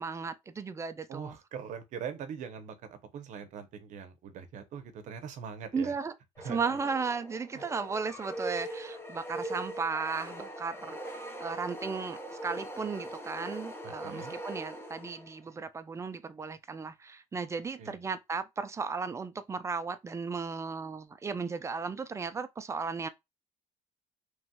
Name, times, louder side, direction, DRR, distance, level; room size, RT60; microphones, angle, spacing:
voice 1, 0.0-1.4 5.7-6.1 6.4-23.1, right 5 dB, 20° right, 0.4 m, -35 dB
voice 2, 1.1-5.9 6.4-6.7 7.5-7.7 13.8-14.3 17.8-18.0, right 7 dB, 65° right, 0.7 m, -42 dB
sound 1, 6.4-15.5, right 1 dB, 15° left, 0.8 m, -41 dB
3.1 x 2.7 x 2.2 m
cardioid pair, 105°, 14 cm